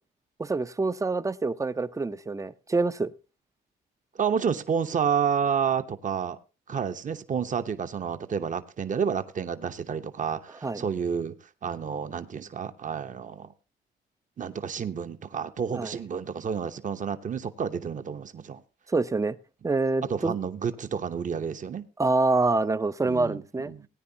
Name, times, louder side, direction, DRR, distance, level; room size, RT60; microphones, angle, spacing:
voice 1, 0.4-3.1 10.6-10.9 15.7-15.9 18.9-19.4 19.6-20.4 22.0-23.7, right 3 dB, 15° right, 0.5 m, -26 dB
voice 2, 4.2-6.4 6.7-11.3 11.6-13.5 14.4-18.6 20.1-21.8 23.0-23.9, right 7 dB, 40° right, 0.9 m, -30 dB
18.0 x 9.6 x 2.8 m
cardioid pair, 90°, 20 cm